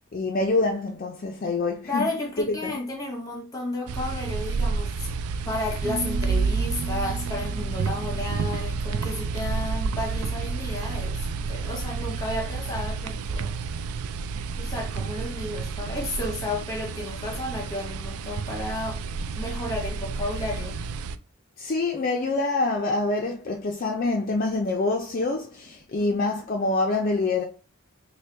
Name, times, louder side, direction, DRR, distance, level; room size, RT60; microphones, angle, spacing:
voice 1, 0.1-2.0 2.4-2.7 21.6-27.4, left 3 dB, 40° left, 0.4 m, -26 dB
voice 2, 1.9-5.1 5.4-13.5 14.6-19.0 19.3-20.8 26.0-26.1, left 2 dB, 15° left, 0.8 m, -32 dB
sound 1, 3.9-21.2, right 4 dB, 85° right, 0.3 m, -30 dB
sound 2, 5.8-9.0, right 3 dB, 45° right, 0.8 m, -38 dB
4.3 x 2.2 x 3.3 m
head